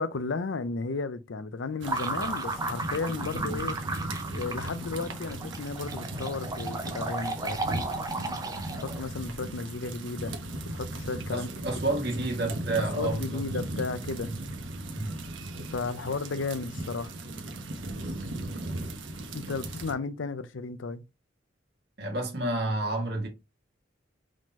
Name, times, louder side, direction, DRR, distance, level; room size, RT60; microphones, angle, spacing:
voice 1, 0.0-3.8 4.3-7.6 8.1-8.4 8.7-10.4 10.7-11.5 13.0-14.3 15.7-17.1 19.3-21.0, left 4 dB, 80° left, 0.6 m, -34 dB
sound 1, 1.8-9.1, right 2 dB, 20° right, 0.6 m, -34 dB
sound 2, 1.8-19.9, right 1 dB, 80° right, 1.1 m, -37 dB
voice 2, 11.3-13.4 14.2-14.3 14.9-15.2 22.0-23.3, right 2 dB, 55° right, 1.8 m, -30 dB
5.0 x 3.8 x 2.8 m
head